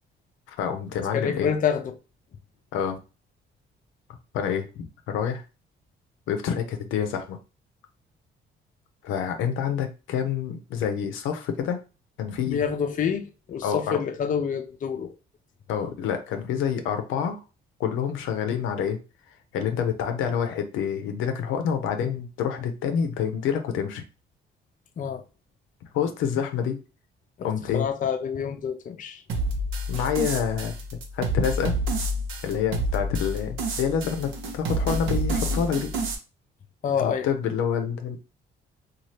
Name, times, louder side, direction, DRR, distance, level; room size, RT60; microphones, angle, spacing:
voice 1, 0.5-1.5 2.7-3.0 4.3-5.4 6.3-7.4 9.0-11.8 12.2-12.6 13.6-14.0 15.7-17.4 17.8-19.0 19.5-24.0 25.9-26.8 27.4-27.9 29.9-30.8 31.1-31.7 32.4-35.9 37.0-38.2, left 7 dB, 90° left, 0.6 m, -27 dB
voice 2, 1.1-1.9 12.5-15.1 25.0-25.2 27.4-27.5 27.7-29.2 36.8-37.3, left 7 dB, 40° left, 0.5 m, -27 dB
sound 1, 29.3-36.1, right 1 dB, 85° right, 0.7 m, -29 dB
2.7 x 2.4 x 3.1 m
cardioid pair, 90°, 20 cm